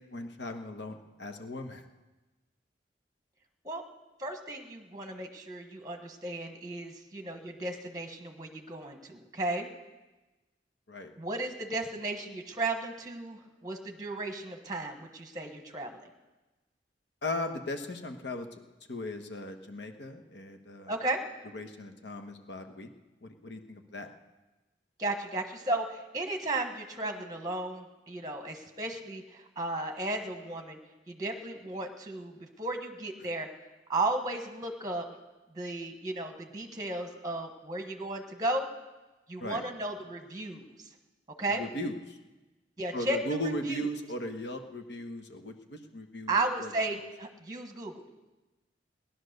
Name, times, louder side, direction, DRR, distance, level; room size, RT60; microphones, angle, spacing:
voice 1, 0.1-1.8 10.9-11.1 17.2-18.5 18.9-20.9 21.5-22.9 23.2-24.1 39.4-39.6 41.5-42.2 42.9-46.7, left 1 dB, 75° left, 5 dB, 1.3 m, -37 dB
voice 2, 4.2-9.7 11.2-16.1 20.9-21.2 25.0-30.8 31.1-33.5 33.9-35.0 35.5-38.7 39.3-40.9 41.4-41.6 42.8-43.2 43.4-43.8 46.3-48.0, right 2 dB, 20° right, 5 dB, 1.2 m, -34 dB
18.0 x 11.0 x 6.6 m, 1.1 s
head